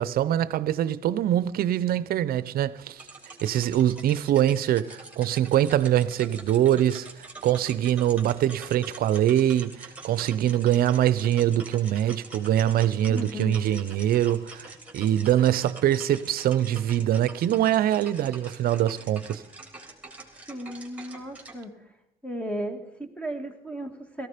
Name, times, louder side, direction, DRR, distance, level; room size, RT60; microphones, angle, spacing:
voice 1, 0.0-3.0 3.4-7.1 7.4-19.4, right 11 dB, 65° right, 0.7 m, -23 dB
sound 1, 3.0-21.6, right 2 dB, 10° right, 3.2 m, -45 dB
voice 2, 13.1-13.6 20.5-21.9 22.2-24.3, equal, 5° left, 2.2 m, -35 dB
16.5 x 14.5 x 5.1 m
cardioid pair, 110°, 17 cm